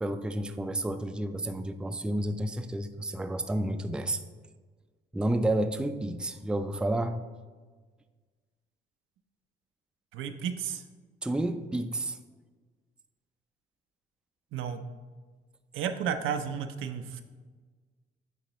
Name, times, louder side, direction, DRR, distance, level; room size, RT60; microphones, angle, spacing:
voice 1, 0.0-4.3 5.1-7.2 11.2-12.2, right 1 dB, 5° right, 9 dB, 0.3 m, -30 dB
voice 2, 10.1-10.8 14.5-14.8 15.7-17.2, right 8 dB, 80° right, 7 dB, 0.5 m, -32 dB
9.3 x 3.9 x 3.0 m, 1.4 s
cardioid pair, 90°, 20 cm